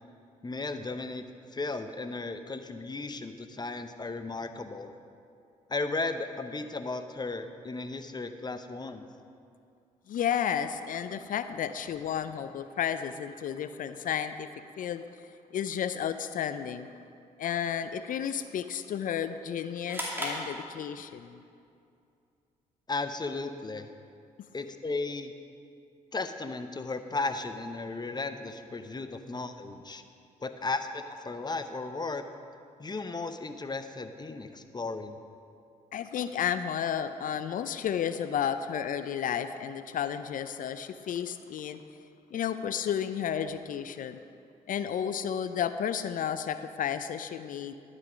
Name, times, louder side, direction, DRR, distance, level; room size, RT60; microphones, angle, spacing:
voice 1, 0.4-1.3 1.5-4.9 5.7-9.0 22.9-23.9 24.5-25.3 26.1-30.0 30.4-32.3 32.8-35.2, left 3 dB, 25° left, 9 dB, 0.8 m, -35 dB
voice 2, 10.1-14.5 14.8-15.0 15.5-16.9 17.4-21.4 35.9-41.8 42.3-44.2 44.7-47.7, left 8 dB, 60° left, 12 dB, 0.5 m, -32 dB
sound 1, 19.9-21.3, equal, 15° right, 2.5 m, -36 dB
11.5 x 6.5 x 5.1 m, 2.5 s
supercardioid pair, 50°, 16 cm